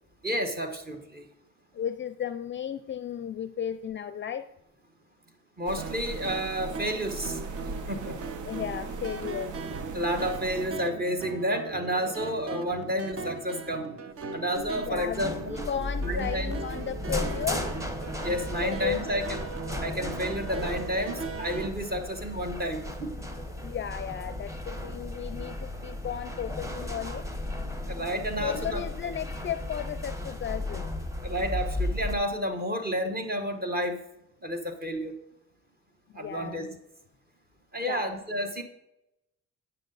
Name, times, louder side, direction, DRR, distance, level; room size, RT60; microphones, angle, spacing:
voice 1, 0.2-1.2 5.6-7.4 7.9-8.2 9.9-13.9 14.3-15.6 16.0-16.5 18.2-19.2 19.8-23.1 27.9-28.8 31.2-34.0 34.4-35.1 36.1-36.7 37.7-38.6, equal, 30° right, 5 dB, 1.3 m, -31 dB
voice 2, 1.7-4.5 8.4-9.6 14.7-17.7 18.6-19.1 23.6-27.3 28.4-30.9 36.1-36.7 37.8-38.0, left 9 dB, 40° left, 12 dB, 0.4 m, -34 dB
sound 1, 5.7-10.7, right 3 dB, 85° right, 0.9 m, -39 dB
sound 2, 5.8-21.7, right 5 dB, 50° right, 0.8 m, -39 dB
sound 3, 14.6-32.1, left 1 dB, 10° right, 1.2 m, -35 dB
9.1 x 6.8 x 4.0 m, 0.87 s
cardioid pair, 90°, 30 cm